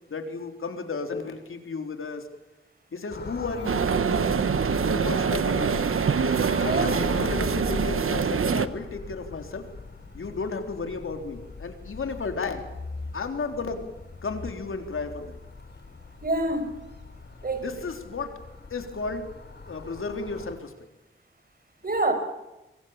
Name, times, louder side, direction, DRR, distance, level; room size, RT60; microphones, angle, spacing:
voice 1, 0.1-2.3 2.9-4.4 4.9-5.9 6.6-9.7 10.1-12.7 13.1-13.9 14.2-15.4 17.6-18.4 18.7-19.3 19.7-20.7, left 4 dB, 80° left, 5 dB, 3.7 m, -33 dB
sound 1, 3.1-20.5, left 3 dB, 55° left, 4.5 m, -40 dB
sound 2, 3.6-8.7, right 6 dB, 85° right, 1.2 m, -25 dB
voice 2, 6.7-7.0 16.2-16.7 17.4-17.6 21.8-22.1, right 2 dB, 45° right, 8 dB, 5.8 m, -26 dB
26.5 x 23.5 x 7.2 m, 1.0 s
wide cardioid pair, 130°, 21 cm